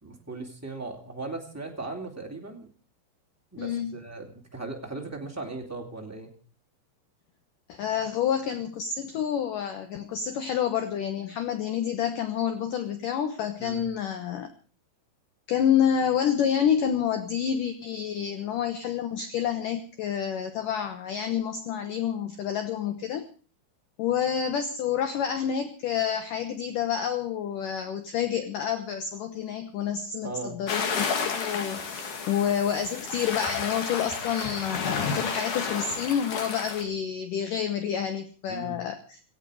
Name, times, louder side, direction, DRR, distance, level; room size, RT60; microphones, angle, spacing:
voice 1, 0.0-2.7 3.5-6.3 13.6-13.9 30.2-30.6 38.5-38.8, right 3 dB, 15° right, 0 dB, 0.5 m, -38 dB
voice 2, 3.6-4.0 7.7-14.5 15.5-23.3 24.0-39.2, left 8 dB, 70° left, 8 dB, 2.0 m, -28 dB
sound 1, 30.7-36.8, left 5 dB, 50° left, 3.0 m, -31 dB
17.5 x 16.5 x 4.9 m, 0.40 s
omnidirectional pair, 5.4 m